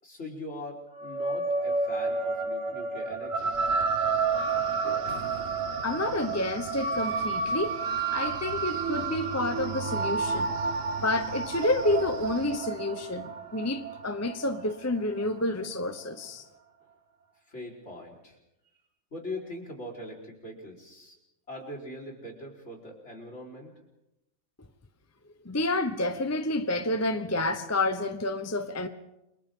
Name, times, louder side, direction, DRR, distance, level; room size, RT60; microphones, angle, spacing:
voice 1, 0.0-3.6 17.5-18.4 19.1-21.1 21.5-23.7, left 1 dB, 65° left, 4.8 m, -41 dB
sound 1, 0.9-15.7, right 4 dB, 90° right, 1.8 m, -30 dB
Wind, 3.4-12.6, right 6 dB, 55° right, 1.2 m, -45 dB
voice 2, 4.8-5.2 5.8-7.8 8.1-10.5 11.0-16.4 25.4-28.9, left 2 dB, 15° left, 0.9 m, -29 dB
29.5 x 25.0 x 3.8 m
omnidirectional pair, 1.3 m